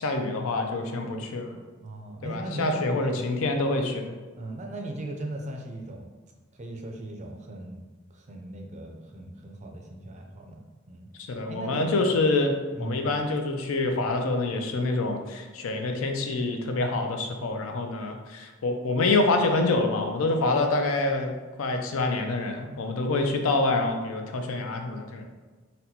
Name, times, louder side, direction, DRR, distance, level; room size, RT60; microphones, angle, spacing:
voice 1, 0.0-1.6 2.2-4.1 11.3-12.5 12.8-21.3 21.6-25.3, left 2 dB, 80° left, 4 dB, 0.4 m, -26 dB
voice 2, 1.8-3.3 4.4-6.1 6.5-7.8 8.1-12.0 12.7-13.1 13.6-14.3, right 1 dB, 35° right, 2 dB, 0.4 m, -38 dB
4.0 x 2.2 x 2.8 m, 1.3 s
head